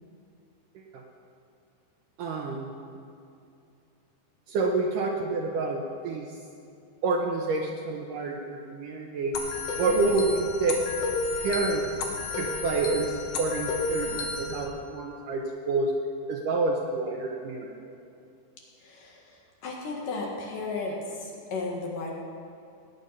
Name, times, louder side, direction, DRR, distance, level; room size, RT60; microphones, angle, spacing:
voice 1, 2.2-2.7 4.5-6.3 7.0-9.4 9.8-10.8 11.4-11.8 12.4-15.9 16.3-17.9, right 3 dB, 70° right, 1 dB, 2.2 m, -28 dB
sound 1, 9.3-14.6, left 3 dB, 85° left, 1.3 m, -32 dB
voice 2, 18.8-22.1, left 3 dB, 60° left, -2 dB, 3.0 m, -35 dB
18.0 x 9.7 x 5.5 m, 2.5 s
omnidirectional pair, 4.6 m